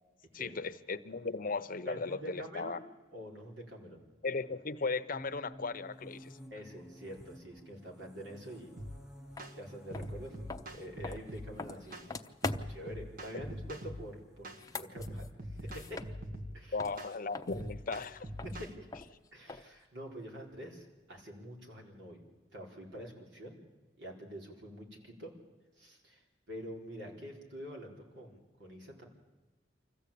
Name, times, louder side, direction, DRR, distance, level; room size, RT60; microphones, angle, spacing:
voice 1, 0.3-2.8 4.2-6.4 16.7-18.2, left 4 dB, 50° left, 10 dB, 0.8 m, -37 dB
voice 2, 1.8-2.8 3.1-4.1 6.5-8.7 9.5-12.0 12.7-16.0 16.5-16.8 17.5-17.7 18.4-18.7 19.3-22.2 22.5-23.6 24.0-25.4 25.8-29.0, equal, 70° right, 0 dB, 4.4 m, -46 dB
sound 1, 5.1-14.7, equal, 5° right, 1.2 m, -55 dB
sound 2, 8.8-9.0 9.4-9.6 9.9-11.5 11.9-12.1 12.4-14.0 14.4-14.6 15.0-16.6 17.0-17.1 17.5-18.7, equal, 50° right, 1.6 m, -43 dB
sound 3, 9.4-9.5 9.9-12.9 14.4-16.5 16.8-19.8, left 3 dB, 20° left, 0.7 m, -43 dB
25.5 x 15.0 x 8.6 m, 1.3 s
head